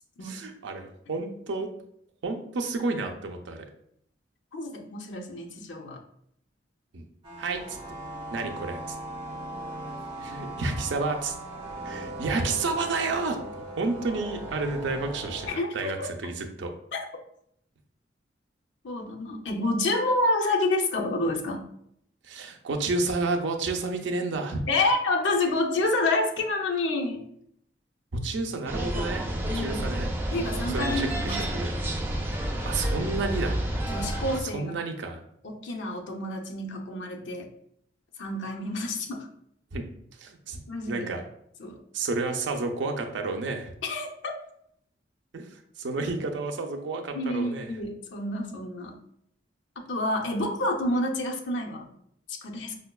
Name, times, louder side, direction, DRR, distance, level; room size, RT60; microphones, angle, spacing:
voice 1, 0.2-1.7 2.2-3.7 6.9-7.1 7.4-7.8 8.3-9.0 10.2-11.3 11.8-13.4 13.8-15.5 15.7-16.7 22.2-24.7 28.1-29.3 29.5-30.1 30.7-31.7 32.6-33.6 34.4-35.2 39.7-39.8 40.2-41.2 41.9-43.7 45.3-47.7, right 3 dB, 75° right, 3 dB, 0.5 m, -30 dB
voice 2, 4.5-6.0 15.5-16.1 16.9-17.0 18.8-21.7 24.7-27.2 29.5-30.0 30.3-31.4 33.9-34.7 35.4-37.5 38.2-39.3 40.7-41.1 41.6-41.8 43.8-44.3 47.1-49.0 49.8-51.9 52.3-52.8, left 2 dB, 80° left, 1 dB, 0.5 m, -28 dB
sound 1, 7.2-15.5, right 1 dB, 35° right, 1.1 m, -39 dB
sound 2, 28.7-34.4, right 1 dB, 10° right, 0.3 m, -30 dB
4.9 x 2.2 x 2.2 m, 0.71 s
head